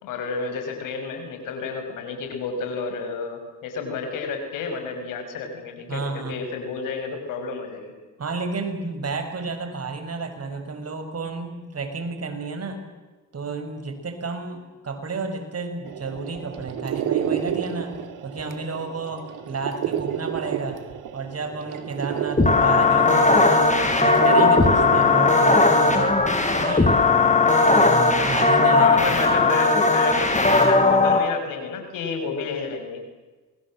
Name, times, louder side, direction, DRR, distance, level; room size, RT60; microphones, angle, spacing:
voice 1, 0.0-7.9 28.8-33.0, left 5 dB, 90° left, 6 dB, 5.9 m, -31 dB
voice 2, 5.9-6.4 8.2-12.8 13.3-20.8 21.1-26.2 26.6-27.1 27.7-29.1, right 4 dB, 50° right, 7 dB, 6.1 m, -31 dB
sound 1, 15.9-26.1, right 9 dB, 85° right, 2.5 m, -31 dB
sound 2, 22.4-31.2, left 3 dB, 25° left, 7.4 m, -18 dB
27.5 x 21.5 x 7.6 m, 1.3 s
supercardioid pair, 60°, 31 cm